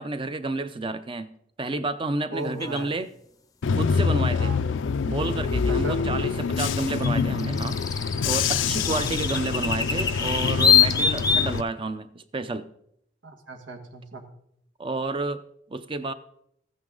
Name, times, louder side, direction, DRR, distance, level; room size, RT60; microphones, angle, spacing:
voice 1, 0.0-3.1 3.7-4.5 5.0-7.8 8.2-12.7 14.8-15.4 15.7-16.1, right 2 dB, 30° right, 0.6 m, -30 dB
voice 2, 2.3-2.9 4.4-4.6 5.7-6.0 8.9-9.0 13.2-14.2, right 2 dB, 85° right, 1.5 m, -36 dB
sound 1, 2.6-2.8 5.3-5.4 7.0-11.6, left 7 dB, 20° left, 0.6 m, -23 dB
Bus / Engine, 3.6-11.6, left 5 dB, 80° left, 0.4 m, -26 dB
14.5 x 9.3 x 3.9 m
head